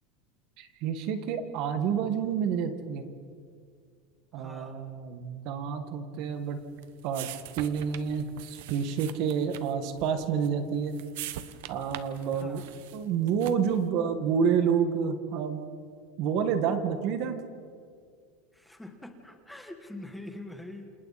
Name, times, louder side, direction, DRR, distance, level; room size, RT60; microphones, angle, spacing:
voice 1, 0.6-3.0 4.3-6.6 7.0-7.3 7.6-10.9 11.7-12.6 12.9-15.6 16.2-17.4, right 7 dB, 50° right, 8 dB, 1.8 m, -29 dB
voice 2, 4.3-4.9 12.3-12.8 18.5-20.8, left 1 dB, ahead, 4 dB, 1.5 m, -44 dB
sound 1, 6.4-13.8, right 12 dB, 75° right, 1.1 m, -44 dB
28.5 x 28.0 x 4.3 m, 2.2 s
supercardioid pair, 160°, 0 cm